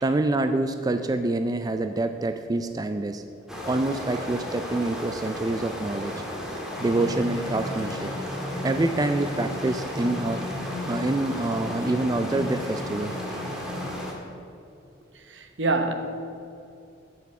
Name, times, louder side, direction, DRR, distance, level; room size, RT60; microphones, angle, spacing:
voice 1, 0.0-3.2 3.6-6.1 6.8-8.1 8.6-10.5 10.8-13.2, right 2 dB, 20° right, 8 dB, 0.3 m, -26 dB
sound 1, 3.5-14.1, left 1 dB, 5° right, 1.6 m, -35 dB
sound 2, 6.7-14.0, left 1 dB, 10° left, 2.5 m, -36 dB
voice 2, 15.1-15.9, right 3 dB, 70° right, 6 dB, 1.0 m, -26 dB
8.4 x 7.0 x 8.2 m, 2.6 s
head